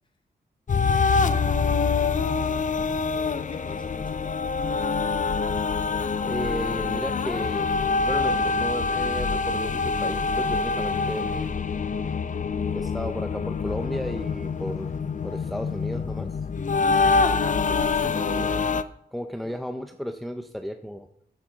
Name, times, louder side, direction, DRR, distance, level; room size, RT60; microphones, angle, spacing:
sound 1, 0.7-18.8, left 4 dB, 45° left, 0.6 m, -25 dB
voice 1, 1.8-4.4 14.7-14.9 19.4-19.6, left 2 dB, 25° left, 5 dB, 1.3 m, -46 dB
voice 2, 6.2-7.8 8.0-11.5 12.7-14.9 15.2-16.3 17.5-18.5 19.1-21.1, equal, ahead, 6 dB, 0.7 m, -34 dB
13.5 x 9.7 x 4.0 m, 0.70 s
wide cardioid pair, 120°, 18 cm